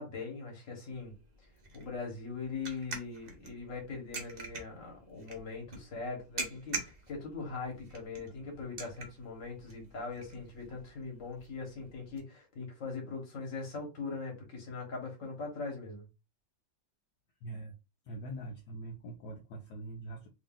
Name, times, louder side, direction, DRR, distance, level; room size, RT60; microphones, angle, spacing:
voice 1, 0.0-1.5 1.7-16.1, left 4 dB, 45° left, 1.7 m, -41 dB
sound 1, 0.9-12.2, right 3 dB, 55° right, 0.4 m, -46 dB
voice 2, 17.4-17.7 18.0-20.3, right 1 dB, 70° left, 1.3 m, -43 dB
3.2 x 2.7 x 3.7 m
omnidirectional pair, 2.0 m